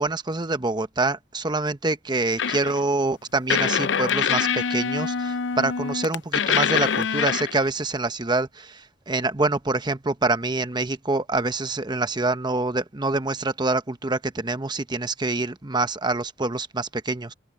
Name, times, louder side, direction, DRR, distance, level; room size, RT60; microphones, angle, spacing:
voice 1, 0.0-17.3, right 2 dB, 25° right, 1.0 m, -26 dB
sound 1, 2.4-2.8 3.5-7.7, left 7 dB, 75° left, 0.6 m, -24 dB
open air
head